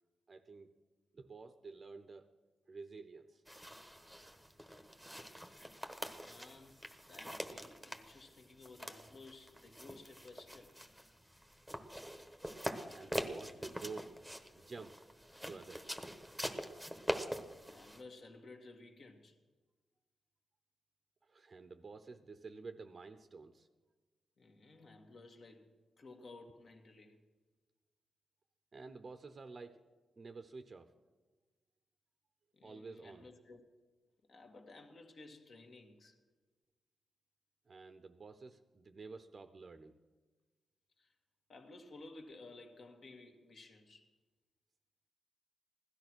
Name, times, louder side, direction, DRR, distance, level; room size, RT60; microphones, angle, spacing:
voice 1, 0.3-0.8 1.1-2.3 2.7-3.4 12.9-14.1 14.5-15.0 15.5-15.8 21.2-23.7 28.7-29.8 30.2-30.9 32.6-33.3 37.7-40.0, right 4 dB, 40° right, 9 dB, 0.7 m, -50 dB
sound 1, 3.5-18.0, equal, 5° left, 1.2 m, -44 dB
voice 2, 6.2-10.7 17.7-19.4 24.4-27.2 32.5-33.6 34.3-36.2 41.0-41.1 41.5-44.1, left 3 dB, 50° left, 4 dB, 1.9 m, -56 dB
16.5 x 12.0 x 6.2 m, 1.3 s
wide cardioid pair, 115°, 0 cm